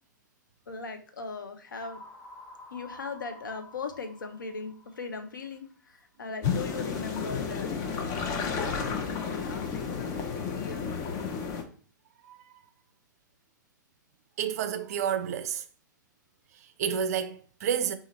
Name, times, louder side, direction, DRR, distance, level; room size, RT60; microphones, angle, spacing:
voice 1, 0.7-2.0 2.7-10.3 10.5-10.9, left 4 dB, 75° left, 0.5 m, -39 dB
sound 1, 1.8-5.7, left 1 dB, 5° left, 1.1 m, -50 dB
sound 2, 6.4-11.6, left 6 dB, 30° left, 0.6 m, -32 dB
voice 2, 12.2-12.6 14.4-15.7 16.5-17.9, right 8 dB, 50° right, 0.4 m, -30 dB
2.8 x 2.5 x 4.0 m
figure-of-eight pair, 105°, 11 cm